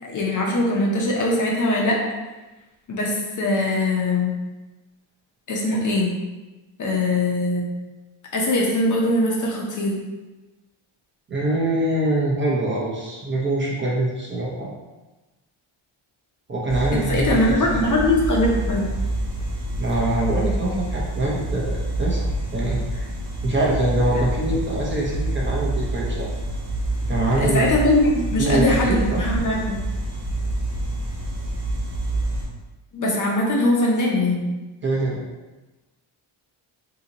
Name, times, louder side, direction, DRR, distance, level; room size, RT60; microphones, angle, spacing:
voice 1, 0.0-2.0 2.9-4.3 5.5-6.1 6.8-7.7 8.3-10.0 16.9-18.9 24.2-24.3 27.3-29.8 32.9-34.5, left 1 dB, 40° left, -2 dB, 0.6 m, -21 dB
voice 2, 11.3-14.7 16.5-17.8 19.8-23.1 23.4-26.3 27.1-27.9 28.4-29.2 34.8-35.2, right 1 dB, 25° right, -5 dB, 0.6 m, -24 dB
sound 1, 16.7-32.5, right 1 dB, 40° right, 1.2 m, -27 dB
2.9 x 2.7 x 3.8 m, 1.1 s
cardioid pair, 150°, 49 cm